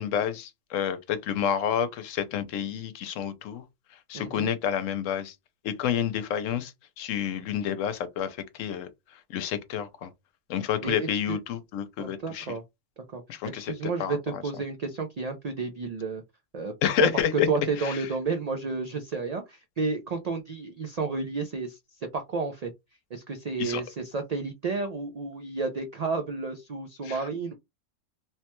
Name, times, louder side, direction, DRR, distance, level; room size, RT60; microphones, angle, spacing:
voice 1, 0.0-3.6 4.1-5.3 5.6-8.9 9.3-10.1 10.5-12.5 13.3-13.7 14.0-14.4 16.8-17.5 17.8-18.0 23.6-23.8 27.0-27.2, left 9 dB, 90° left, 1.0 m, -29 dB
voice 2, 4.1-4.5 10.8-11.4 12.0-12.6 13.1-16.2 16.5-16.7 17.0-21.8 22.1-22.7 23.1-27.5, right 4 dB, 85° right, 0.3 m, -31 dB
3.0 x 2.2 x 2.9 m
omnidirectional pair, 1.3 m